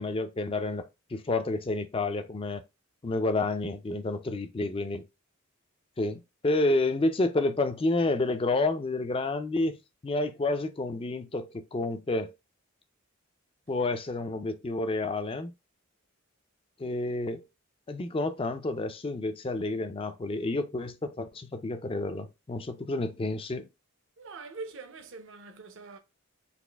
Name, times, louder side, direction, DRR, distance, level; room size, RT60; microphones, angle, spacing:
voice 1, 0.0-2.6 3.0-5.0 6.0-12.3 13.7-15.5 16.8-17.5 17.9-23.7, left 2 dB, 25° left, 0.4 m, -30 dB
voice 2, 24.2-26.0, right 4 dB, 60° right, 0.7 m, -43 dB
4.1 x 2.5 x 3.3 m
head